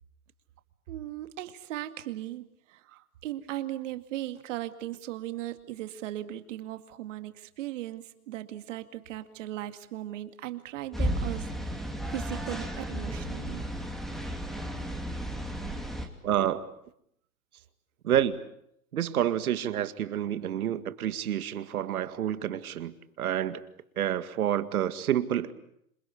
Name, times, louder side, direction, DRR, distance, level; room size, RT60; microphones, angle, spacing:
voice 1, 0.9-13.7, right 14 dB, 55° right, 10 dB, 2.3 m, -38 dB
sound 1, 10.9-16.1, equal, ahead, 2.6 m, -33 dB
voice 2, 16.2-16.7 18.0-18.4 18.9-23.6 24.0-25.5, right 11 dB, 75° right, 12 dB, 2.1 m, -28 dB
27.5 x 22.5 x 8.3 m, 0.73 s
hypercardioid pair, 140°, 44 cm